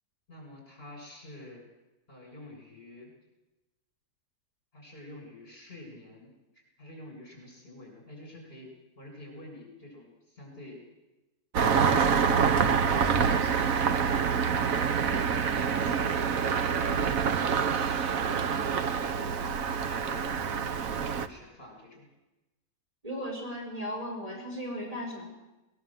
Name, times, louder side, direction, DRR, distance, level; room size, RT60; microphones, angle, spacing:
voice 1, 0.3-1.6 2.1-3.1 4.7-10.8 15.3-17.2 17.6-18.7 19.0-20.8 21.3-22.1, left 1 dB, 35° left, 0 dB, 8.0 m, -49 dB
Engine starting, 11.5-21.3, right 6 dB, 55° right, 1.4 m, -26 dB
voice 2, 23.0-25.2, equal, 20° right, -1 dB, 4.8 m, -36 dB
21.5 x 21.0 x 7.8 m, 1.0 s
omnidirectional pair, 1.8 m